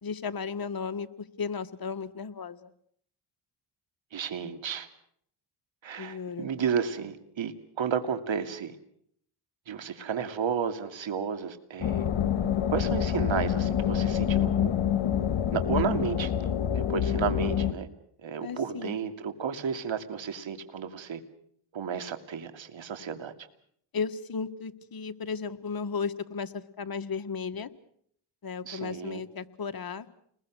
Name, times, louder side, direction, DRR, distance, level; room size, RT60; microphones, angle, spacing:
voice 1, 0.0-2.7 6.0-6.5 18.4-19.0 23.9-27.7 28.4-30.0, left 5 dB, 45° left, 9 dB, 1.8 m, -35 dB
voice 2, 4.1-4.9 5.8-8.7 9.7-12.0 12.7-14.7 15.5-16.3 16.7-17.9 18.2-21.2 21.7-23.3 28.6-29.2, right 7 dB, 65° right, 10 dB, 2.7 m, -32 dB
sound 1, 11.8-17.7, left 9 dB, 65° left, 1.9 m, -27 dB
30.0 x 21.5 x 6.4 m, 0.66 s
cardioid pair, 75°, 50 cm